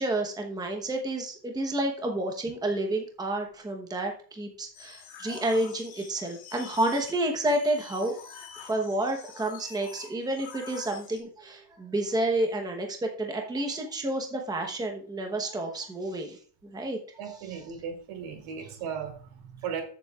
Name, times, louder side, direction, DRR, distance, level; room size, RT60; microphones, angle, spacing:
voice 1, 0.0-16.4 16.6-17.0, right 1 dB, 10° right, 2 dB, 1.0 m, -30 dB
sound 1, 4.7-11.2, left 7 dB, 80° left, 2.4 m, -46 dB
voice 2, 17.2-19.8, right 7 dB, 90° right, 4 dB, 3.0 m, -36 dB
14.0 x 7.3 x 2.4 m, 0.44 s
cardioid pair, 180°, 47 cm